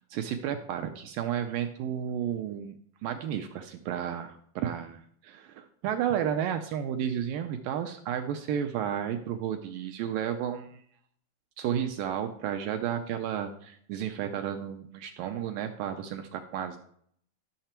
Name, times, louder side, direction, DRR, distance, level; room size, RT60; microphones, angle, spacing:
voice 1, 0.1-2.7 3.0-10.8 11.6-16.8, right 9 dB, 85° right, 7 dB, 2.0 m, -32 dB
12.5 x 6.7 x 4.4 m, 0.65 s
omnidirectional pair, 4.6 m